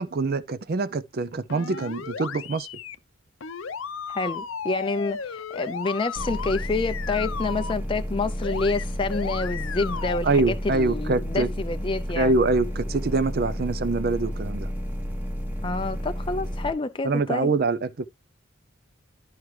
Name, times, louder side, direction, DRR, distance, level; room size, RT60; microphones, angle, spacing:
voice 1, 0.0-2.7 10.2-11.5 12.2-14.7 17.0-18.0, right 3 dB, 45° right, 0.4 m, -24 dB
sound 1, 1.5-2.9 3.4-7.7 8.4-8.8 9.1-10.2, left 6 dB, 75° left, 0.6 m, -35 dB
voice 2, 4.1-12.3 15.6-17.5, left 3 dB, 25° left, 0.4 m, -28 dB
Static Idle Loop Finished, 6.2-16.7, equal, 10° right, 1.1 m, -31 dB
12.0 x 4.8 x 3.1 m
head